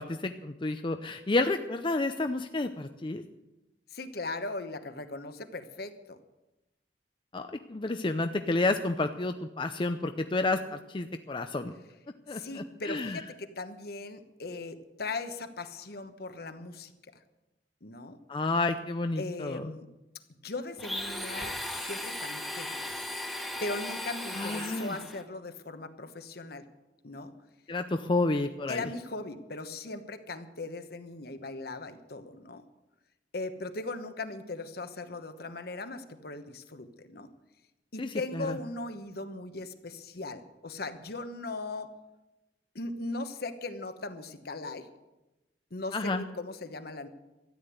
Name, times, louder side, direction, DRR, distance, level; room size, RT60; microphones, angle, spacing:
voice 1, 0.0-3.2 7.3-7.4 7.7-11.7 12.3-13.2 18.3-19.7 24.3-25.0 27.7-28.8 38.0-38.6 45.9-46.2, left 2 dB, 30° left, 7 dB, 0.5 m, -30 dB
voice 2, 3.9-6.2 12.3-16.9 17.8-18.2 19.2-19.9 20.4-22.7 23.6-26.6 27.0-27.3 28.7-32.6 33.3-37.3 37.9-41.9 42.7-44.9 45.7-47.1, left 2 dB, 60° left, 9 dB, 1.1 m, -38 dB
Domestic sounds home sounds, 20.8-25.2, left 1 dB, ahead, 1.4 m, -37 dB
13.5 x 9.8 x 8.1 m, 1.0 s
head